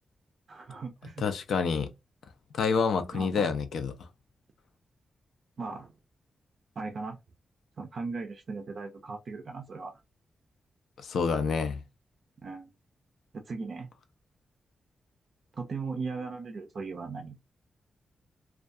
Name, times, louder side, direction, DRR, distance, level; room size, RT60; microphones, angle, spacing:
voice 1, 0.5-1.2 3.1-3.5 5.6-5.9 6.8-7.2 7.8-10.0 12.4-12.7 13.3-13.9 15.5-17.4, right 4 dB, 50° right, 0.4 m, -38 dB
voice 2, 1.2-1.9 2.5-4.1 11.0-11.8, left 5 dB, 80° left, 0.5 m, -28 dB
2.3 x 2.2 x 2.5 m
wide cardioid pair, 150°, 0 cm